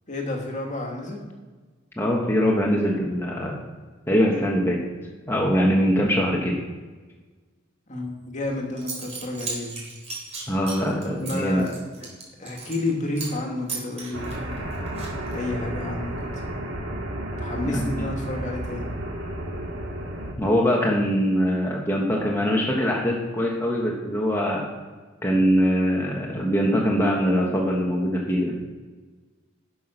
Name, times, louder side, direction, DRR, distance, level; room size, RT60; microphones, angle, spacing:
voice 1, 0.1-1.2 7.9-9.7 11.0-11.7 12.4-14.8 15.3-16.4 17.4-18.9, left 2 dB, 40° left, 0 dB, 2.2 m, -30 dB
voice 2, 2.0-3.5 4.1-4.8 5.3-6.5 10.5-11.6 17.6-18.1 20.4-24.6 25.2-28.5, equal, 10° left, -3 dB, 1.5 m, -22 dB
Zipper (clothing) / Coin (dropping), 8.4-8.5 8.8-12.9 13.2-13.4 13.7-15.5, right 4 dB, 35° right, 3.7 m, -36 dB
sound 1, 14.1-20.3, right 1 dB, 70° right, 2.2 m, -32 dB
12.0 x 6.1 x 5.8 m, 1.3 s
head